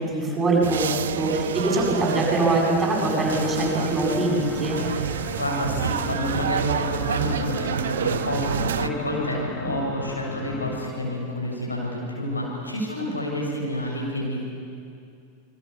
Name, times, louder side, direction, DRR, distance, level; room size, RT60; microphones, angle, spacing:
voice 1, 0.0-4.8, right 2 dB, 10° right, -4 dB, 7.9 m, -23 dB
sound 1, 0.6-8.9, right 9 dB, 60° right, 0.6 m, -29 dB
sound 2, 3.2-10.9, left 3 dB, 20° left, 2.0 m, -37 dB
voice 2, 5.4-14.4, left 1 dB, 80° left, -2 dB, 7.3 m, -29 dB
28.5 x 22.0 x 7.2 m, 2.4 s
figure-of-eight pair, 90°, 0 cm